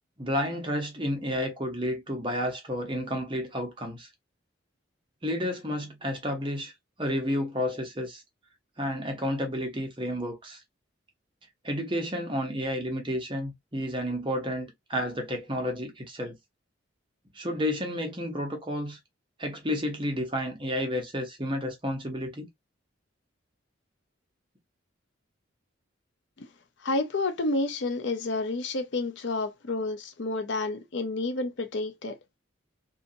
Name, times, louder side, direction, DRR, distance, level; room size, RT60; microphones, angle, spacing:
voice 1, 0.2-4.1 5.2-6.7 7.0-8.2 8.8-10.6 11.6-16.4 17.3-19.0 19.4-22.5, equal, 25° right, 0.9 m, -31 dB
voice 2, 26.8-32.1, left 2 dB, 65° left, 0.6 m, -30 dB
2.7 x 2.7 x 2.5 m
head